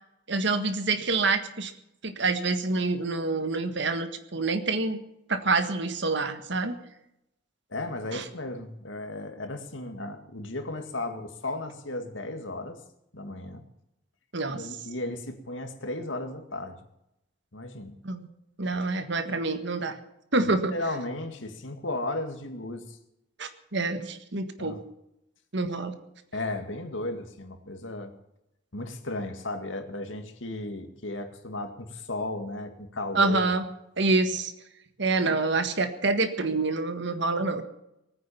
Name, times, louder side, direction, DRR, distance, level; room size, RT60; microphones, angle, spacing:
voice 1, 0.3-1.7 2.0-5.0 5.3-6.7 8.1-8.2 14.3-14.6 18.0-18.3 18.6-20.0 20.3-20.7 23.4-24.7 25.5-26.0 33.1-33.6 34.0-34.5 35.0-37.6, right 3 dB, 65° right, 9 dB, 1.7 m, -27 dB
voice 2, 7.7-12.8 13.1-13.7 14.5-16.8 17.5-18.0 18.7-18.8 20.4-23.0 24.6-24.8 26.3-28.1 28.7-33.5, left 2 dB, 85° left, 7 dB, 2.1 m, -35 dB
19.5 x 9.5 x 7.1 m, 0.83 s
head